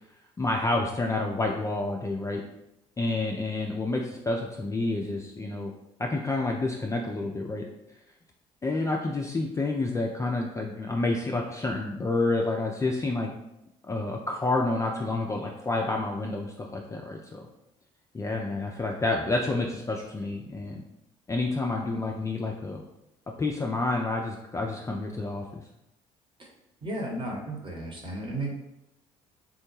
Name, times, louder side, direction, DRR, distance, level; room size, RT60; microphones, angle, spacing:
voice 1, 0.4-2.4 3.0-5.7 6.0-7.7 8.6-13.3 13.8-17.5 18.1-20.8 21.3-22.8 23.4-25.6, left 2 dB, 15° left, 0 dB, 0.4 m, -29 dB
voice 2, 26.8-28.5, right 1 dB, 30° right, -1 dB, 1.0 m, -33 dB
3.7 x 2.1 x 3.1 m, 0.86 s
figure-of-eight pair, 55°, 18 cm